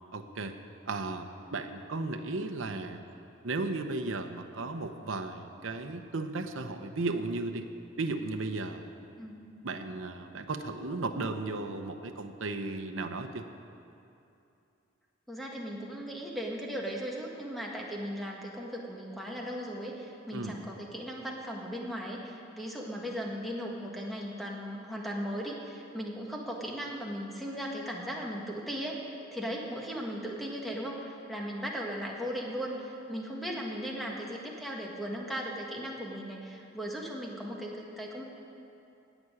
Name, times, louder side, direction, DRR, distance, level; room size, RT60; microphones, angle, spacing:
voice 1, 0.1-0.5 0.9-3.0 3.4-7.7 8.0-8.9 9.6-13.5 20.3-20.6, right 3 dB, 85° right, 6 dB, 0.9 m, -35 dB
voice 2, 15.3-38.2, equal, ahead, -2 dB, 1.6 m, -37 dB
16.5 x 6.1 x 9.6 m, 2.7 s
head